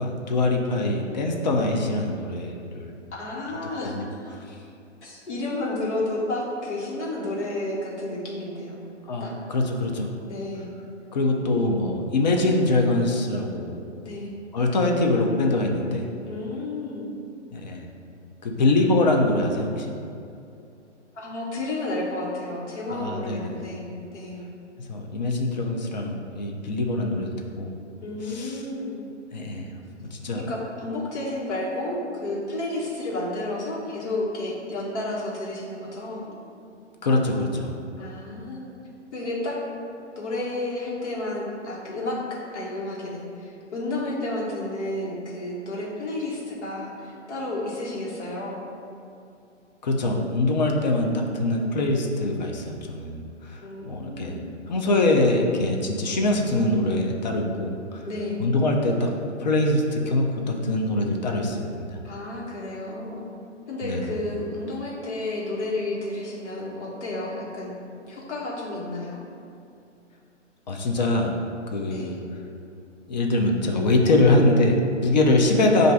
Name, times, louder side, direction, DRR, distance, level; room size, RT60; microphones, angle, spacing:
voice 1, 0.0-2.9 3.8-4.0 9.1-10.1 11.1-13.8 14.5-16.1 17.5-17.9 18.4-19.9 22.9-23.5 24.9-27.7 28.2-28.6 29.3-29.7 30.0-30.4 37.0-37.8 49.8-53.6 53.9-54.4 54.7-58.0 58.4-59.1 59.4-62.0 63.8-64.1 70.7-71.4 71.7-72.2 73.1-75.9, left 2 dB, 40° left, 1 dB, 0.4 m, -23 dB
voice 2, 3.2-4.3 5.0-8.8 9.2-9.4 10.2-10.8 14.0-14.3 16.2-17.1 21.1-24.4 28.0-29.0 30.3-36.3 38.0-38.7 39.1-39.6 40.1-48.7 53.6-54.5 58.1-58.4 62.0-63.2 63.7-67.8 68.1-69.2 71.9-72.2, left 2 dB, 70° left, -5 dB, 1.3 m, -31 dB
7.0 x 2.5 x 2.2 m, 2.5 s
hypercardioid pair, 135°, 36 cm